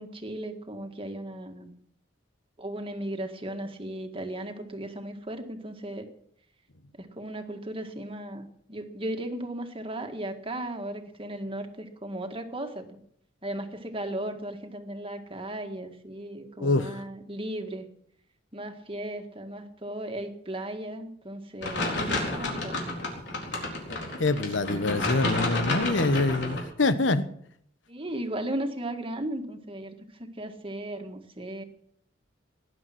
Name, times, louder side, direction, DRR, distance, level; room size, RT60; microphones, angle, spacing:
voice 1, 0.0-1.7 2.6-6.1 7.0-13.0 13.4-17.9 18.5-22.8 27.9-31.6, right 1 dB, 30° right, 5 dB, 1.9 m, -36 dB
voice 2, 16.6-16.9 24.2-27.2, left 3 dB, 85° left, 12 dB, 1.2 m, -25 dB
sound 1, 21.6-26.6, left 2 dB, 65° left, 4.1 m, -30 dB
19.0 x 11.0 x 6.1 m, 0.66 s
head